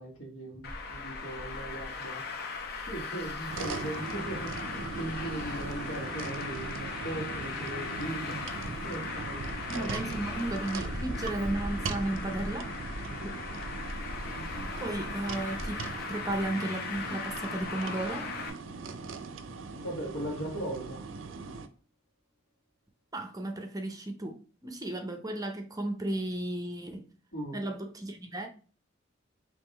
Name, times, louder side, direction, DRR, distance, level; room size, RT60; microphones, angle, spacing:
voice 1, 0.0-2.2 2.7-9.5 9.7-10.1 13.1-13.4 19.8-21.1 27.3-27.6, right 1 dB, 75° left, 0 dB, 1.6 m, -39 dB
Traffic noise roadway noise, 0.6-18.5, left 3 dB, 55° left, 0.7 m, -38 dB
sound 1, 3.5-21.7, right 4 dB, 75° right, 0.5 m, -40 dB
voice 2, 9.7-12.7 14.8-15.8 16.1-18.3 23.1-24.4 24.6-27.0 27.5-28.5, right 1 dB, 20° right, 5 dB, 0.6 m, -34 dB
3.7 x 2.9 x 4.4 m, 0.37 s
head